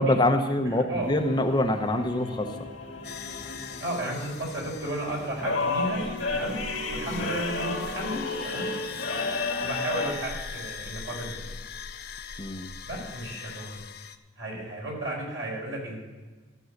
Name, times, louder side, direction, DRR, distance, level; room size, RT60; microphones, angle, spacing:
voice 1, 0.0-2.6 7.1-7.3 12.4-12.7, left 1 dB, 20° left, 5 dB, 0.8 m, -25 dB
sound 1, 1.0-10.1, left 3 dB, 70° left, 1.8 m, -33 dB
sound 2, 3.0-14.2, left 6 dB, 50° left, 0.6 m, -40 dB
voice 2, 3.8-6.6 6.9-8.7 9.6-11.5 12.8-13.8 14.4-16.0, right 1 dB, 85° right, -2 dB, 4.4 m, -33 dB
13.5 x 6.3 x 6.4 m, 1.3 s
head